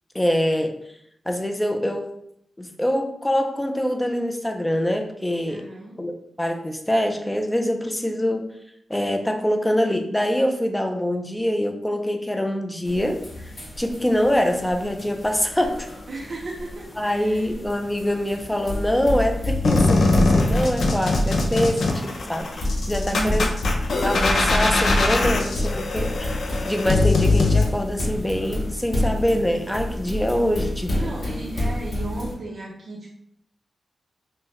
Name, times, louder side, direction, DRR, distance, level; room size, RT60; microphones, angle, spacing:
voice 1, 0.1-0.8 1.3-2.2 2.6-5.7 6.0-8.5 8.9-13.5 13.8-15.9 17.0-23.5 24.0-31.1, equal, 10° left, 5 dB, 0.4 m, -24 dB
voice 2, 5.5-6.0 16.1-17.5 23.0-23.5 30.1-30.2 30.9-33.1, right 2 dB, 50° right, -4 dB, 0.7 m, -34 dB
sound 1, 12.9-32.4, left 1 dB, 40° left, 0.8 m, -29 dB
sound 2, 19.6-27.6, left 3 dB, 65° left, 0.5 m, -22 dB
5.4 x 2.1 x 2.9 m, 0.73 s
wide cardioid pair, 155°, 0 cm